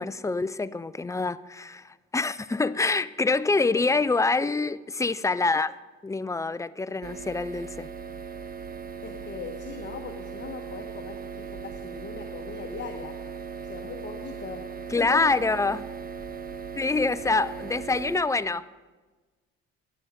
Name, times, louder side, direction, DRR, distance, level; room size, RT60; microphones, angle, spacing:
voice 1, 0.0-7.9 14.9-15.9 16.8-18.7, left 3 dB, 10° left, 0.3 m, -26 dB
sound 1, 7.0-18.2, right 6 dB, 30° right, 0.9 m, -38 dB
voice 2, 9.0-13.2 13.6-15.2, left 6 dB, 35° left, 1.2 m, -40 dB
12.0 x 11.5 x 5.0 m
cardioid pair, 90°, 30 cm